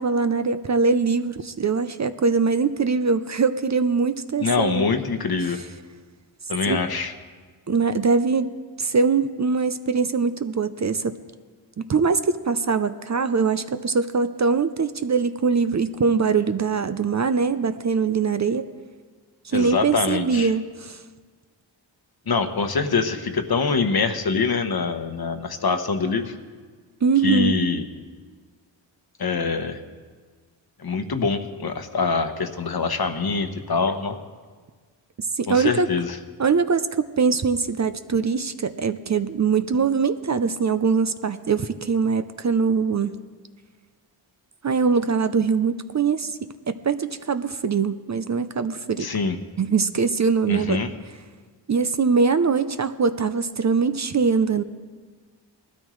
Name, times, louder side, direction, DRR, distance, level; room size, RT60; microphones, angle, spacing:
voice 1, 0.0-4.9 6.7-6.8 7.7-8.5 8.8-11.1 11.8-18.7 19.4-21.0 27.0-27.6 35.2-35.9 36.4-43.1 44.6-49.1 49.6-50.8 51.7-54.6, right 5 dB, 40° right, 11 dB, 0.5 m, -22 dB
voice 2, 4.4-5.6 6.5-7.1 19.5-20.5 22.3-26.3 27.2-27.8 29.2-29.8 30.8-34.2 35.5-36.2 49.0-49.4 50.5-50.9, left 4 dB, 50° left, 8 dB, 1.1 m, -24 dB
19.5 x 13.0 x 3.2 m, 1.5 s
cardioid pair, 75°, 46 cm